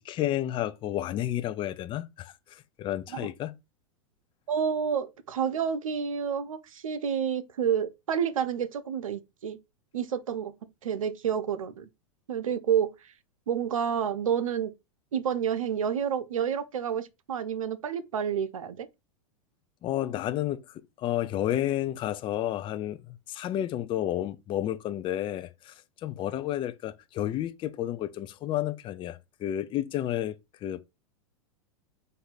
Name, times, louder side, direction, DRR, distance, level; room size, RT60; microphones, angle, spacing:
voice 1, 0.0-3.5 19.8-23.0 23.3-30.3 30.6-30.8, left 12 dB, 30° left, 0.5 m, -31 dB
voice 2, 4.5-9.6 9.9-10.5 10.8-11.9 12.3-12.9 13.5-14.7 15.1-18.9, right 8 dB, 85° right, 0.8 m, -29 dB
4.6 x 2.7 x 4.0 m
hypercardioid pair, 110°, 17 cm